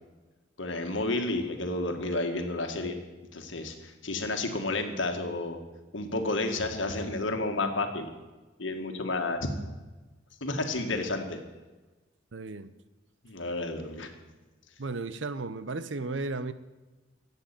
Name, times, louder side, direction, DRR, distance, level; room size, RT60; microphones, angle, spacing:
voice 1, 0.6-3.0 3.3-5.6 5.9-8.1 8.6-9.5 10.4-11.4 13.2-14.1, left 2 dB, 70° left, 5 dB, 1.8 m, -31 dB
voice 2, 12.3-12.7 14.8-16.5, right 3 dB, 65° right, 13 dB, 0.7 m, -34 dB
12.5 x 8.3 x 8.9 m, 1.2 s
head